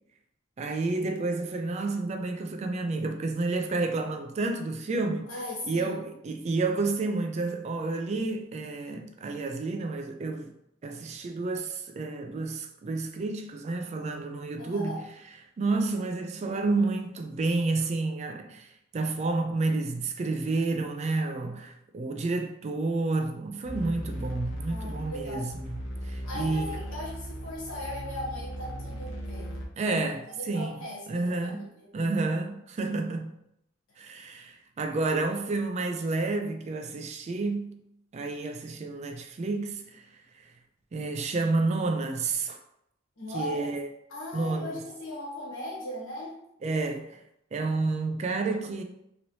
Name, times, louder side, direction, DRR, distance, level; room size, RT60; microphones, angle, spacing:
voice 1, 0.6-5.3 5.6-10.5 10.8-15.1 15.6-18.7 18.9-26.7 29.8-30.8 31.1-31.6 31.9-33.4 34.0-37.8 38.1-40.1 40.4-40.5 40.9-42.6 43.3-43.9 44.3-44.8 46.6-47.2 47.5-48.8, right 3 dB, 35° right, 0.3 m, -30 dB
voice 2, 5.3-6.0 14.6-15.0 24.7-25.4 26.2-29.9 30.3-31.9 43.2-43.7 44.1-46.3, left 1 dB, 80° left, 1.2 m, -38 dB
sound 1, 23.6-29.7, equal, 65° left, 0.6 m, -37 dB
3.0 x 2.9 x 2.7 m
head